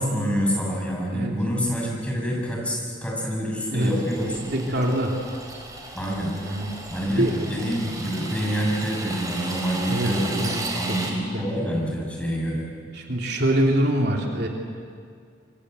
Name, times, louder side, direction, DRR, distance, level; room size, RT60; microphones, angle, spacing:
voice 1, 0.0-4.8 5.9-6.4 6.9-10.5 10.7-12.7, equal, 5° left, -2 dB, 7.5 m, -27 dB
sound 1, 3.8-11.1, right 2 dB, 20° right, 4.9 m, -35 dB
voice 2, 4.5-5.1 6.4-6.7 7.1-7.3 9.9-10.1 10.4-11.4 12.9-14.5, right 1 dB, 60° right, 0 dB, 3.1 m, -24 dB
26.5 x 25.0 x 8.2 m, 2.2 s
head